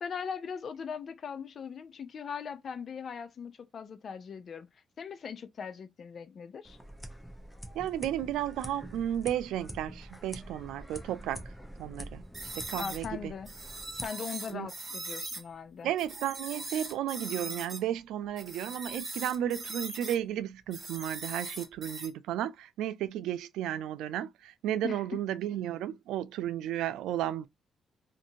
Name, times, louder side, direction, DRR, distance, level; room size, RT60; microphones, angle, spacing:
voice 1, 0.0-4.7 5.0-6.8 12.8-13.5 13.9-15.9 24.8-25.0, left 6 dB, 50° left, 0.4 m, -40 dB
sound 1, 6.6-14.1, equal, 5° left, 0.7 m, -45 dB
voice 2, 7.8-11.4 11.8-12.2 12.6-13.3 14.5-14.7 15.8-27.5, right 11 dB, 90° right, 0.3 m, -33 dB
sound 2, 12.3-15.4 16.0-17.8 18.4-20.2 20.7-22.1, right 3 dB, 30° right, 1.5 m, -40 dB
2.6 x 2.6 x 2.6 m
cardioid pair, 90°, 0 cm